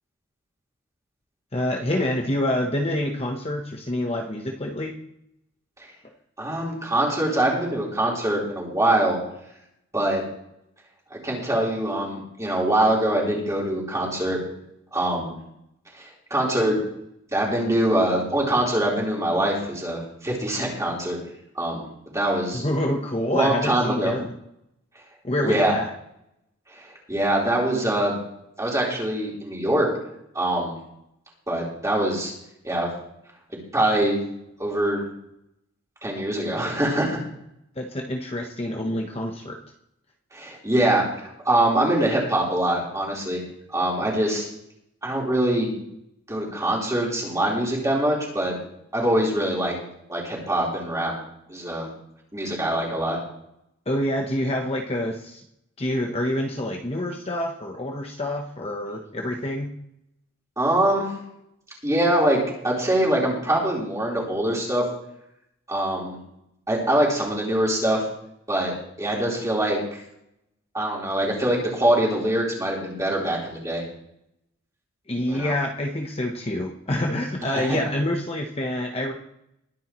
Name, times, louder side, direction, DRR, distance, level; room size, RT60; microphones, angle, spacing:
voice 1, 1.5-5.0 22.5-24.3 25.2-25.9 37.8-39.6 53.9-55.4 55.8-59.7 75.1-79.1, left 1 dB, 30° left, 2 dB, 1.0 m, -27 dB
voice 2, 6.4-9.2 9.9-10.2 11.1-14.4 14.9-15.4 15.9-16.8 17.3-21.2 21.6-21.8 22.1-22.6 23.3-24.1 25.4-25.7 26.7-28.2 28.6-29.9 30.3-30.7 31.5-32.3 32.6-32.9 33.5-34.2 34.6-35.1 36.0-37.2 40.3-43.4 43.7-44.5 45.0-45.7 46.3-48.6 48.9-49.8 50.1-51.1 51.5-51.9 52.3-53.2 60.6-61.1 61.8-64.8 65.7-66.2 66.7-68.0 68.5-70.0 70.7-73.8 75.3-75.5 77.5-77.8, right 1 dB, 15° right, -4 dB, 4.0 m, -23 dB
21.5 x 10.0 x 3.1 m, 0.77 s
head